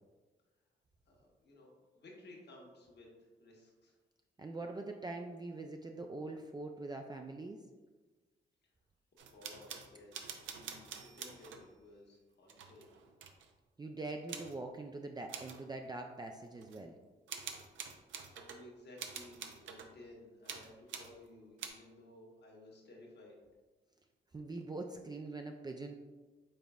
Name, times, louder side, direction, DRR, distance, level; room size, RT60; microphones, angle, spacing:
voice 1, 1.1-3.9 9.3-12.8 17.7-17.9 18.3-23.4, left 1 dB, 55° left, -2 dB, 1.3 m, -57 dB
voice 2, 4.4-7.6 13.8-16.9 24.3-25.9, right 2 dB, 20° right, 3 dB, 0.4 m, -43 dB
sound 1, 9.2-11.7 12.5-13.5 14.3-14.6 15.3-15.6 16.6-16.8 17.3-18.6 19.0-20.0 20.5-21.1 21.6-21.7, right 7 dB, 75° right, 0.5 m, -46 dB
5.4 x 3.8 x 2.4 m, 1.3 s
supercardioid pair, 45°, 20 cm